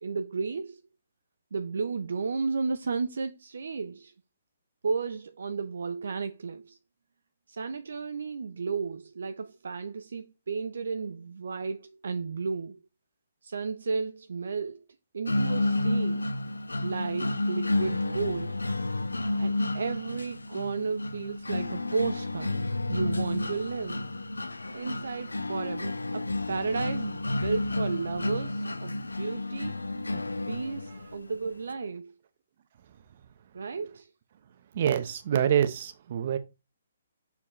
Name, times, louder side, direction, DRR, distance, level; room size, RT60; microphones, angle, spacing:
voice 1, 0.0-0.8 1.5-4.1 4.8-6.8 7.5-12.9 13.4-14.9 15.1-16.3 16.8-18.6 19.4-24.1 24.7-29.8 30.1-32.1 33.5-34.1, right 4 dB, 65° right, 0.5 m, -33 dB
sound 1, 15.3-31.2, left 2 dB, 85° left, 0.5 m, -31 dB
voice 2, 34.7-36.4, right 9 dB, 45° right, 0.9 m, -26 dB
7.0 x 4.6 x 3.2 m
figure-of-eight pair, 135°, 0 cm